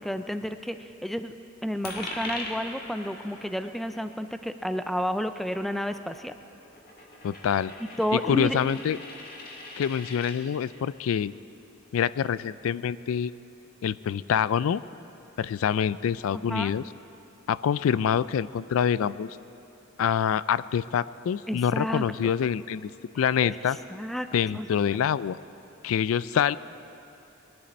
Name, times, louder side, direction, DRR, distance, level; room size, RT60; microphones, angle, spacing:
voice 1, 0.0-1.3 1.6-6.3 8.0-8.7 16.3-16.7 21.5-22.3 23.4-24.3 24.5-24.7, equal, ahead, 9 dB, 0.3 m, -31 dB
Coin (dropping), 1.8-10.4, left 2 dB, 45° left, 1.9 m, -42 dB
voice 2, 7.2-7.7 8.3-9.0 9.8-11.3 11.9-13.3 13.8-14.8 15.4-16.8 17.5-19.3 20.0-22.9 23.2-23.8 24.3-25.4 25.8-26.6, left 8 dB, 80° left, 17 dB, 0.3 m, -26 dB
21.0 x 12.0 x 4.2 m, 2.7 s
head